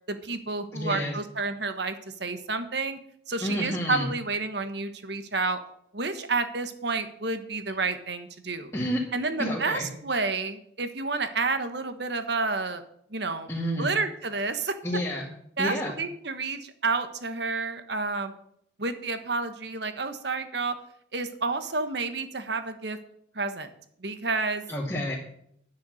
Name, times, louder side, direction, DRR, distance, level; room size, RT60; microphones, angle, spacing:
voice 1, 0.1-1.9 2.2-3.0 3.3-5.6 5.9-8.7 9.1-12.8 13.1-13.5 13.8-14.7 15.6-18.3 18.8-20.7 21.1-23.0 23.3-23.7 24.0-24.6, right 3 dB, 55° right, 9 dB, 1.4 m, -30 dB
voice 2, 0.7-1.2 3.4-4.1 8.7-9.0 9.4-9.9 13.5-13.9 14.8-15.3 15.6-16.0 24.7-25.2, equal, 15° left, -6 dB, 2.2 m, -29 dB
10.5 x 9.7 x 6.4 m, 0.69 s
head